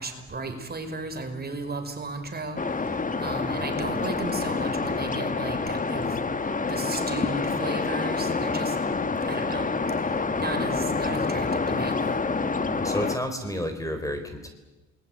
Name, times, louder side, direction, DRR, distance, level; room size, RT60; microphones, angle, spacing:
voice 1, 0.0-2.6 3.2-6.1 6.7-8.8 9.2-9.7 10.3-12.0, right 3 dB, 30° right, 6 dB, 5.1 m, -34 dB
sound 1, 2.6-13.2, left 4 dB, 25° left, 1.6 m, -27 dB
voice 2, 12.8-14.5, equal, 10° left, 7 dB, 4.3 m, -31 dB
28.0 x 20.5 x 9.2 m, 1.1 s
cardioid pair, 90°, 30 cm